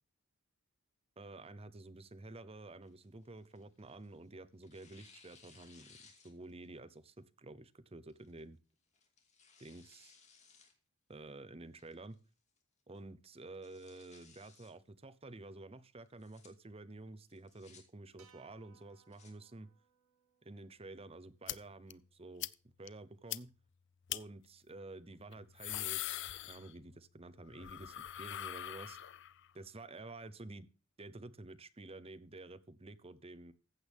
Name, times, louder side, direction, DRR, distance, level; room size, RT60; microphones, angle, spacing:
voice 1, 1.2-6.0 6.2-8.6 9.6-10.1 11.1-12.2 12.9-19.7 20.4-22.5 22.8-23.5 24.1-29.0 29.5-30.7 31.0-33.5, right 2 dB, 25° right, 14 dB, 0.8 m, -51 dB
Tearing, 2.8-4.2 4.6-6.7 7.1-7.2 8.1-8.4 8.9-10.7 11.1-11.2 11.8-12.2 12.6-12.7 12.9-13.0 13.4-14.7 16.0-16.5 17.3-17.8 18.8-19.3, left 5 dB, 35° left, 2.4 m, -63 dB
sound 1, 18.2-22.5, right 7 dB, 85° right, 2.1 m, -70 dB
sound 2, 21.5-21.6 21.9-22.0 22.4-22.5 22.9-23.0 23.3-23.4 24.1-24.2 25.3-27.0 27.3-29.5, left 13 dB, 55° left, 0.5 m, -41 dB
14.5 x 8.0 x 3.6 m, 0.35 s
head